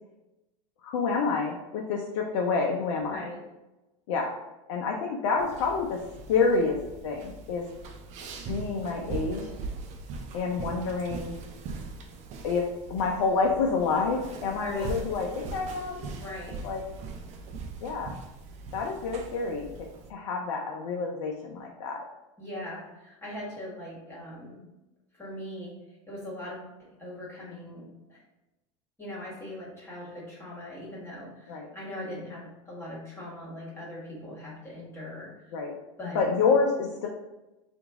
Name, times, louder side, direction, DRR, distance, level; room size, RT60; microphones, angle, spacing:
voice 1, 0.8-3.2 4.1-4.3 4.7-6.0 6.3-6.8 7.0-7.7 8.5-9.5 10.3-11.4 12.4-12.6 12.9-16.1 16.6-16.8 17.8-18.1 18.7-22.0 31.5-31.7 35.5-35.7 36.1-37.1, left 4 dB, 70° left, 0 dB, 0.5 m, -28 dB
voice 2, 3.0-3.4 14.5-14.9 16.2-16.6 22.4-24.6 25.1-28.2 29.0-35.5 36.0-36.3, left 1 dB, 15° left, -7 dB, 1.5 m, -41 dB
sound 1, 5.4-20.1, right 4 dB, 45° right, 0.5 m, -41 dB
2.9 x 2.6 x 3.5 m, 1.0 s
hypercardioid pair, 90°, 16 cm